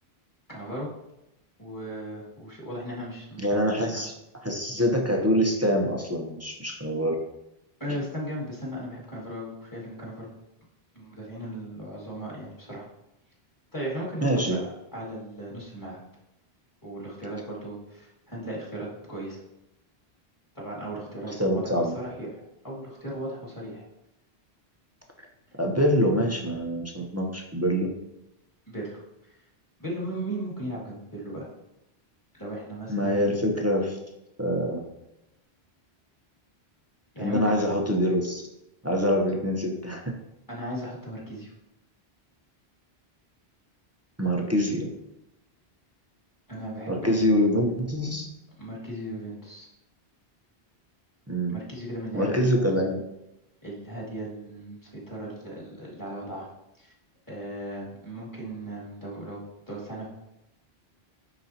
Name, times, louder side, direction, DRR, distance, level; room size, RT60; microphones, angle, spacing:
voice 1, 0.5-0.9 1.6-4.0 7.8-10.3 10.9-12.8 13.7-14.6 14.9-16.0 16.8-19.4 20.5-23.8 28.7-29.4 29.8-31.5 32.3-33.2 37.1-37.5 40.5-41.5 46.5-47.4 48.5-49.7 51.5-52.8 53.6-56.5 56.8-56.9 57.3-60.1, right 1 dB, 20° left, -6 dB, 2.1 m, -37 dB
voice 2, 3.4-4.1 4.4-7.2 7.9-8.0 14.2-14.6 21.4-21.9 25.6-27.9 32.9-34.0 34.4-34.8 37.2-38.4 38.8-40.0 44.2-44.9 46.9-48.3 51.3-51.6 52.1-53.0, equal, 15° right, 0 dB, 0.7 m, -25 dB
9.4 x 3.9 x 2.9 m, 0.89 s
omnidirectional pair, 1.1 m